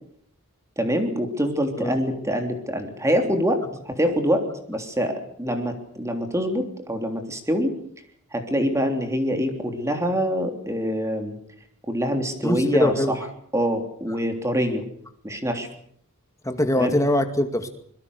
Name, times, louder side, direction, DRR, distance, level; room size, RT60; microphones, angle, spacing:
voice 1, 0.8-7.7 8.3-11.4 11.9-13.2 13.5-14.8 15.2-15.7 16.8-16.9, equal, 15° right, 5 dB, 3.3 m, -25 dB
voice 2, 12.4-13.2 16.4-17.7, left 1 dB, 15° left, 7 dB, 2.2 m, -22 dB
25.0 x 22.0 x 6.6 m, 0.62 s
head